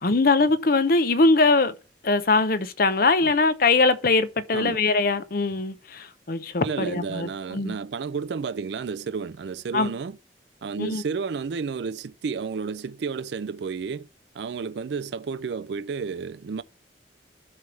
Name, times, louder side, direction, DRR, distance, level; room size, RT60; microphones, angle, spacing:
voice 1, 0.0-1.7 2.0-7.7 9.7-9.9 10.8-11.0, left 3 dB, 50° left, 0.7 m, -22 dB
voice 2, 6.6-10.2 10.6-14.1 14.3-16.6, right 5 dB, 70° right, 0.4 m, -31 dB
9.6 x 3.4 x 6.9 m
head